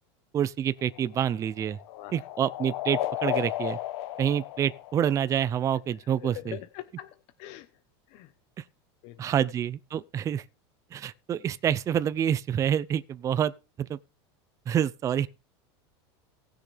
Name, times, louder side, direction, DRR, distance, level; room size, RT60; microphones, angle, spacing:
voice 1, 0.3-1.8 2.1-3.8 4.2-6.6 9.2-10.4 10.9-13.5 13.8-14.0 14.7-15.3, right 9 dB, 20° right, 0.5 m, -27 dB
sound 1, 0.8-5.6, left 13 dB, 75° left, 1.1 m, -34 dB
voice 2, 1.9-2.3 4.2-4.3 6.0-7.7 8.1-8.3 9.0-9.2, left 14 dB, 50° left, 1.0 m, -43 dB
18.5 x 6.7 x 3.4 m
supercardioid pair, 145°, 14 cm